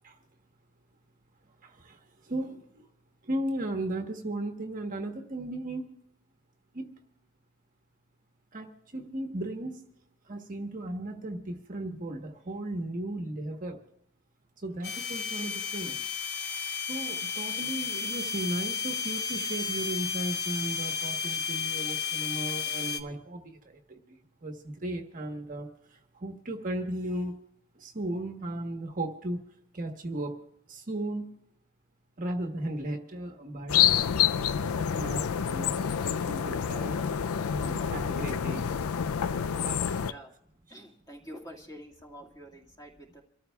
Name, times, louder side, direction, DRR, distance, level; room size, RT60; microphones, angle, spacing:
voice 1, 1.6-2.9 3.2-5.9 6.7-6.9 8.5-9.8 10.2-13.8 14.6-16.0 16.9-27.3 27.7-29.4 29.7-30.4 30.7-31.3 32.2-33.8 34.6-37.0 37.5-38.7 39.6-40.0, right 1 dB, 40° right, 3 dB, 1.2 m, -36 dB
sound 1, 14.8-23.0, left 6 dB, 50° left, 0.8 m, -33 dB
sound 2, 33.7-40.1, left 8 dB, 80° left, 0.4 m, -28 dB
voice 2, 40.7-43.2, equal, 15° left, -1 dB, 2.0 m, -47 dB
28.0 x 13.5 x 2.3 m, 0.77 s
head